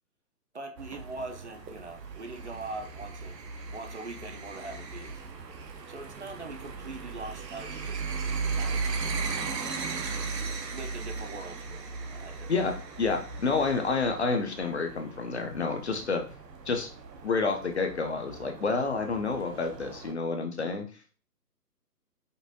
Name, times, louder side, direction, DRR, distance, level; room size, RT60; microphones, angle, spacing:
voice 1, 0.5-3.4 3.7-5.3 5.9-8.9 10.7-12.7 13.1-13.2, right 3 dB, 45° right, 5 dB, 0.5 m, -42 dB
sound 1, 0.8-20.1, right 4 dB, 85° right, 0.9 m, -37 dB
voice 2, 12.5-16.2 16.7-16.9 17.2-20.9, left 4 dB, 45° left, 5 dB, 0.5 m, -29 dB
5.3 x 2.5 x 2.6 m, 0.38 s
hypercardioid pair, 160°, 49 cm